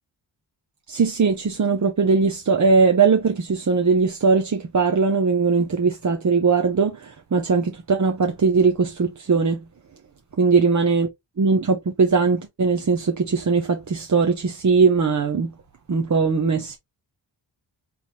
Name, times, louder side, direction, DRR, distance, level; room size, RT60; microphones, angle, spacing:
voice 1, 0.9-9.6 10.4-11.1 11.4-15.5 15.9-16.8, right 4 dB, 40° right, 0.8 m, -20 dB
4.1 x 3.4 x 2.9 m
wide cardioid pair, 80°, 45 cm